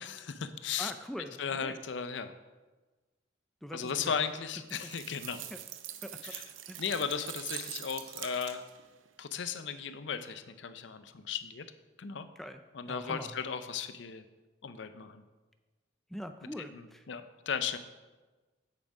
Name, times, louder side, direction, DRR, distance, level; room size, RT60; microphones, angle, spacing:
voice 1, 0.0-0.9 1.4-2.3 3.7-5.4 6.3-6.4 6.8-8.6 9.2-11.7 12.0-12.3 12.7-14.2 14.6-15.2 16.7-17.8, left 6 dB, 65° left, 11 dB, 0.5 m, -36 dB
voice 2, 0.8-1.8 3.6-4.2 4.8-4.9 5.5-5.6 6.0-6.4 6.7-6.8 12.4-12.6 12.9-13.4 16.1-17.1, equal, ahead, 7 dB, 0.3 m, -43 dB
sound 1, 4.7-8.9, right 11 dB, 85° right, 0.6 m, -44 dB
7.7 x 7.1 x 4.8 m, 1.2 s
head